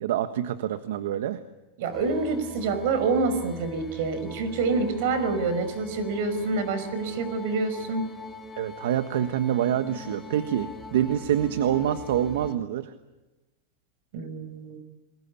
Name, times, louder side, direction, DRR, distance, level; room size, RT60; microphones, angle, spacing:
voice 1, 0.0-1.4 8.6-12.9, right 10 dB, 75° right, 10 dB, 1.3 m, -26 dB
voice 2, 1.8-8.1 14.1-14.8, right 4 dB, 60° right, 11 dB, 5.5 m, -27 dB
sound 1, 1.9-12.5, left 3 dB, 5° left, 2.8 m, -43 dB
29.0 x 22.0 x 8.5 m, 1.1 s
supercardioid pair, 155°, 0 cm